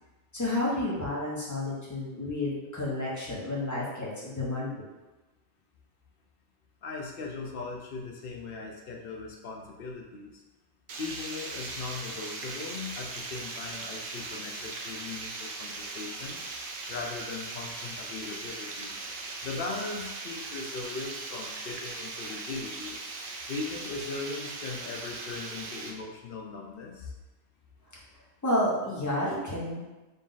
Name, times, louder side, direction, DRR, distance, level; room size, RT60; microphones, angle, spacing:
voice 1, 0.3-4.8 28.4-29.8, left 1 dB, 15° left, -7 dB, 0.9 m, -30 dB
voice 2, 6.8-10.4 11.0-16.5 16.9-18.9 19.4-23.0 23.5-27.1, left 4 dB, 60° left, 0 dB, 0.6 m, -39 dB
Water, 10.9-25.9, right 3 dB, 60° right, 0.6 m, -39 dB
3.9 x 2.4 x 3.9 m, 1.1 s
omnidirectional pair, 1.3 m